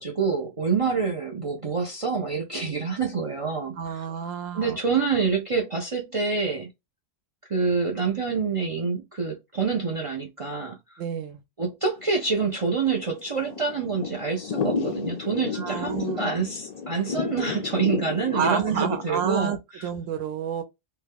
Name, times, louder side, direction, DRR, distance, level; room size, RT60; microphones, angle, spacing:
voice 1, 0.0-4.0 4.5-6.7 7.5-11.0 11.6-19.9, right 5 dB, 50° right, 0.4 m, -27 dB
voice 2, 3.8-4.8 11.0-11.4 15.5-16.2 18.3-20.6, right 8 dB, 75° right, 1.1 m, -29 dB
Thunder / Rain, 12.0-19.1, left 6 dB, 75° left, 0.3 m, -32 dB
2.8 x 2.2 x 3.4 m
omnidirectional pair, 1.3 m